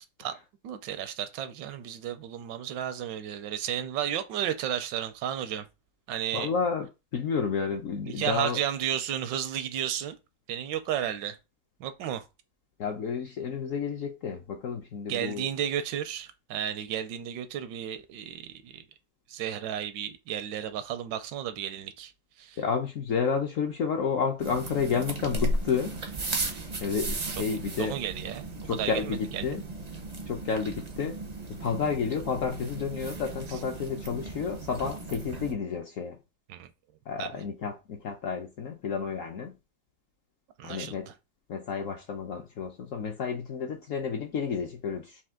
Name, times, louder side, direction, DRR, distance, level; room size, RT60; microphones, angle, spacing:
voice 1, 0.6-5.7 6.1-6.5 8.1-10.2 10.5-11.4 11.8-12.2 15.1-18.8 19.3-22.1 22.4-22.6 27.3-27.4 27.8-29.5 36.5-36.7 37.2-37.3 40.6-41.1, right 10 dB, 80° right, 1.2 m, -33 dB
voice 2, 6.3-6.9 7.1-8.6 12.8-15.5 22.6-26.0 26.8-27.9 28.7-29.6 30.3-31.2 31.6-36.2 37.1-39.5 40.6-41.1 41.5-45.2, left 6 dB, 65° left, 0.8 m, -31 dB
sound 1, 24.4-35.5, right 2 dB, 50° right, 0.4 m, -36 dB
4.3 x 2.8 x 3.6 m
omnidirectional pair, 2.0 m